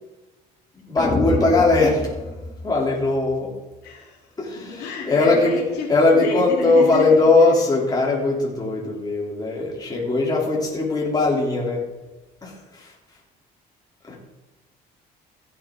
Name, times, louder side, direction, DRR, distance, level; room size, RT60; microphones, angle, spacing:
voice 1, 0.7-3.5 4.4-5.6 5.9-11.8 12.4-12.9 14.1-14.2, left 3 dB, 25° left, -3 dB, 3.2 m, -20 dB
sound 1, 1.0-3.3, left 1 dB, 10° left, 2.6 m, -28 dB
voice 2, 3.8-4.2 4.5-7.3, left 4 dB, 85° left, -3 dB, 3.6 m, -30 dB
15.5 x 7.9 x 3.8 m, 1.1 s
cardioid pair, 110°, 17 cm